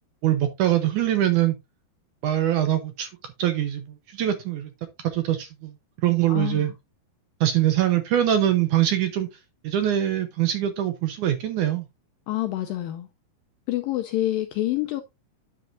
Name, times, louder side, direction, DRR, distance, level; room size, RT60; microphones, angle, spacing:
voice 1, 0.2-1.6 2.2-4.7 5.0-5.7 6.0-6.7 7.4-9.3 9.6-11.9, right 12 dB, 75° right, 1.8 m, -23 dB
voice 2, 6.3-6.7 12.3-13.1 13.7-15.0, left 15 dB, 80° left, 2.0 m, -27 dB
9.6 x 7.7 x 2.6 m
omnidirectional pair, 4.7 m